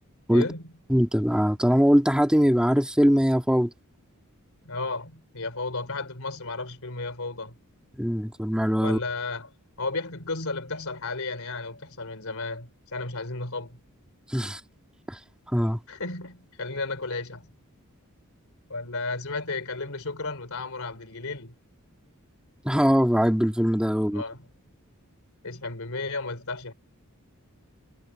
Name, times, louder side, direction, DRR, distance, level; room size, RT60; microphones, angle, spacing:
voice 1, 0.3-0.6 4.6-7.6 8.8-13.8 15.9-17.5 18.7-21.5 24.1-24.4 25.4-26.7, left 3 dB, 65° left, 4.1 m, -33 dB
voice 2, 0.9-3.7 8.0-9.0 14.3-14.6 15.1-15.2 15.5-15.8 22.6-24.2, equal, 5° right, 2.5 m, -21 dB
head